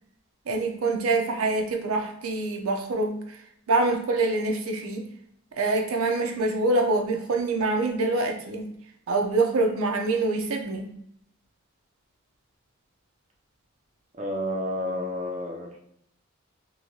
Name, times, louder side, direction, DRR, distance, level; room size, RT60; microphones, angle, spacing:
voice 1, 0.5-3.4 3.7-5.1 5.6-8.7 9.1-10.9, right 2 dB, 85° right, 3 dB, 0.5 m, -25 dB
voice 2, 14.2-15.8, left 1 dB, 30° right, 0 dB, 0.4 m, -30 dB
2.9 x 2.6 x 2.7 m, 0.72 s
head